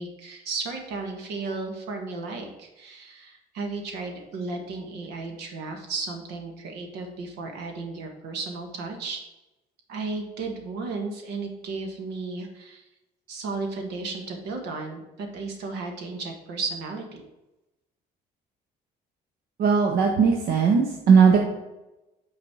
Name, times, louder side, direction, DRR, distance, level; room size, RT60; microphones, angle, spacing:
voice 1, 0.0-9.2 9.9-12.9 13.3-17.2, right 3 dB, 85° right, 3 dB, 1.5 m, -34 dB
voice 2, 19.6-21.4, right 6 dB, 65° right, 1 dB, 0.9 m, -18 dB
5.9 x 4.2 x 6.2 m, 0.98 s
cardioid pair, 110°, 17 cm